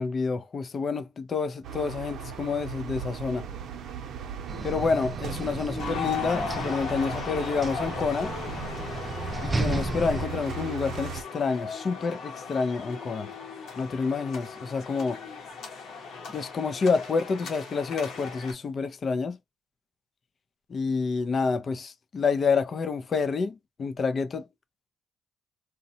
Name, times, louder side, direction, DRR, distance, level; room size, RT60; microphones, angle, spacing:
voice 1, 0.0-3.5 4.6-8.3 9.4-13.3 13.8-15.2 16.3-19.4 20.7-24.4, left 4 dB, 45° left, 0.5 m, -28 dB
sound 1, 1.6-11.2, right 7 dB, 80° right, 0.7 m, -38 dB
sound 2, 4.5-10.3, right 2 dB, 25° right, 0.6 m, -34 dB
sound 3, 5.8-18.5, left 5 dB, 80° left, 1.1 m, -37 dB
2.8 x 2.2 x 2.7 m
cardioid pair, 90°, 0 cm